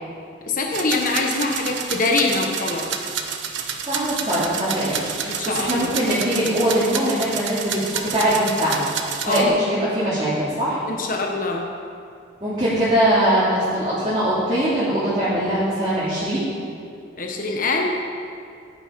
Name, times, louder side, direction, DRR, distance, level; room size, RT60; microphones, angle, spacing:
voice 1, 0.4-2.9 5.2-5.9 9.2-9.5 10.9-11.7 17.2-17.9, left 3 dB, 45° left, 1 dB, 1.1 m, -24 dB
sound 1, 0.7-9.4, right 7 dB, 70° right, 1.1 m, -29 dB
voice 2, 3.9-8.9 9.2-10.8 12.4-16.5, right 1 dB, 25° right, -12 dB, 2.7 m, -22 dB
15.5 x 10.5 x 5.2 m, 2.4 s
head